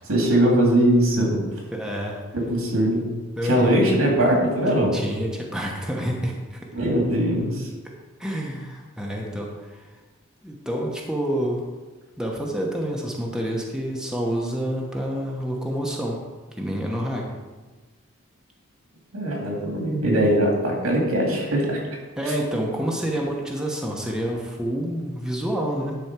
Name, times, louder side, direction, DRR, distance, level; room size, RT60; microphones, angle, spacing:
voice 1, 0.1-1.4 2.3-3.0 3.4-5.0 6.7-7.7 19.1-21.8 22.2-22.3, right 1 dB, 85° right, 0 dB, 2.5 m, -21 dB
voice 2, 1.7-2.2 3.4-3.8 4.9-6.6 8.2-9.8 10.4-11.6 12.2-16.2 16.6-17.3 22.2-26.0, equal, 5° right, -1 dB, 1.0 m, -28 dB
10.5 x 4.3 x 5.9 m, 1.3 s
head